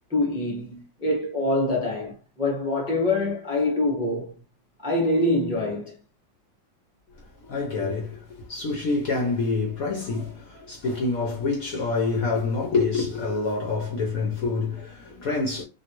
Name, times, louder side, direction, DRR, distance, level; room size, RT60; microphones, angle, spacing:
voice 1, 0.1-4.4 4.8-6.0, left 2 dB, 5° right, 0.8 m, -25 dB
voice 2, 7.4-15.6, left 3 dB, 55° left, 1.1 m, -27 dB
3.2 x 2.6 x 3.0 m
omnidirectional pair, 2.1 m